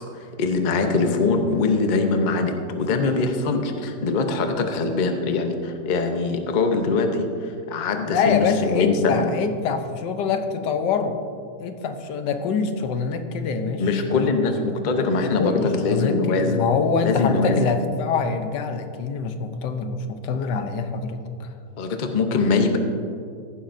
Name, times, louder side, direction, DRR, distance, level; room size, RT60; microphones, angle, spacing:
voice 1, 0.0-9.3 13.8-16.6 17.0-17.7 21.8-22.8, left 3 dB, 40° left, 5 dB, 0.6 m, -22 dB
voice 2, 8.1-11.2 11.6-13.8 14.1-14.4 15.4-21.5, left 5 dB, 80° left, 7 dB, 1.4 m, -25 dB
15.0 x 11.5 x 2.6 m, 2.5 s
omnidirectional pair, 1.8 m